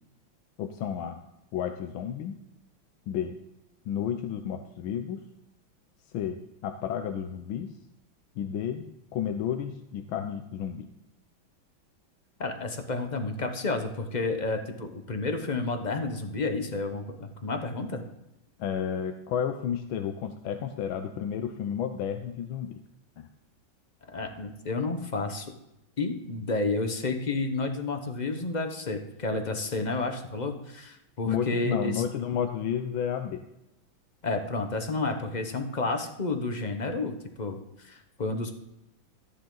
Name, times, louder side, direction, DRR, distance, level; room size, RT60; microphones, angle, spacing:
voice 1, 0.6-1.2 1.5-2.4 3.1-3.4 3.9-5.2 6.1-7.7 8.4-8.8 9.1-10.9 18.6-22.8 23.2-23.3 31.2-33.4, left 8 dB, 80° left, 6 dB, 1.5 m, -31 dB
voice 2, 12.4-18.0 24.1-25.5 26.0-32.0 34.2-38.5, left 3 dB, 40° left, 6 dB, 0.6 m, -31 dB
14.5 x 9.8 x 3.9 m, 0.89 s
omnidirectional pair, 2.2 m